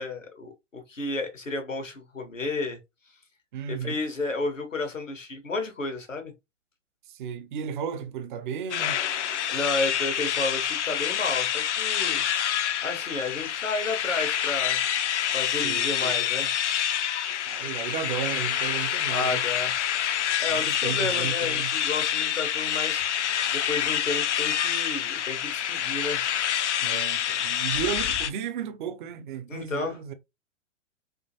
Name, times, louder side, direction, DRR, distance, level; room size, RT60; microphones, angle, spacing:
voice 1, 0.0-2.8 3.7-6.3 9.5-12.2 12.8-14.8 15.3-16.5 19.1-19.8 20.4-23.0 23.5-26.2 29.5-29.9, left 3 dB, 90° left, 1.1 m, -32 dB
voice 2, 3.5-4.0 7.1-9.0 15.6-16.2 17.5-19.4 20.5-21.8 26.8-30.1, right 8 dB, 40° right, 0.6 m, -34 dB
sound 1, 8.7-28.3, left 10 dB, 65° left, 0.5 m, -27 dB
3.6 x 2.5 x 2.8 m
figure-of-eight pair, 105°, 37 cm